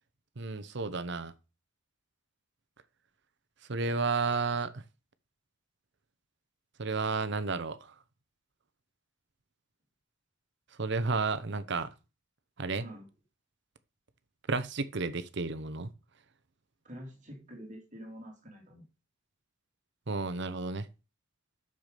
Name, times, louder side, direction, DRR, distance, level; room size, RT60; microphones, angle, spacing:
voice 1, 0.4-1.3 3.7-4.8 6.8-7.8 10.8-11.9 12.6-12.8 14.5-15.9 20.1-20.9, right 4 dB, 65° right, 0.9 m, -32 dB
voice 2, 16.8-18.8, equal, 40° right, 2.7 m, -47 dB
9.5 x 6.9 x 5.1 m
head